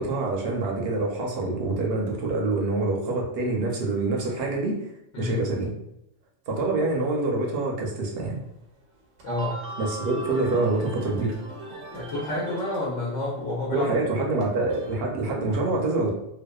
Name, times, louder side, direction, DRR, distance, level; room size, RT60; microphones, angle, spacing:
voice 1, 0.0-4.9 5.2-5.7 6.5-8.4 9.8-11.3 13.7-16.1, right 2 dB, 60° right, -1 dB, 0.7 m, -26 dB
sound 1, 8.3-8.4 8.9-12.8 13.0-15.0, right 2 dB, 90° right, 1.0 m, -40 dB
voice 2, 9.2-9.6 11.9-13.9, left 2 dB, 70° left, -5 dB, 1.0 m, -29 dB
2.6 x 2.2 x 2.2 m, 0.80 s
omnidirectional pair, 1.3 m